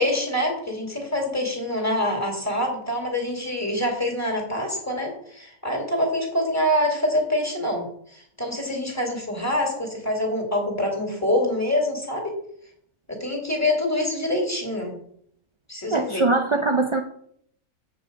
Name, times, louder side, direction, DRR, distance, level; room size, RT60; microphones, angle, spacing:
voice 1, 0.0-12.4 13.1-15.0 15.7-16.2, left 1 dB, 10° left, 1 dB, 2.9 m, -25 dB
voice 2, 15.9-17.0, right 3 dB, 40° right, 4 dB, 0.4 m, -22 dB
8.2 x 8.1 x 5.2 m, 0.65 s
omnidirectional pair, 1.5 m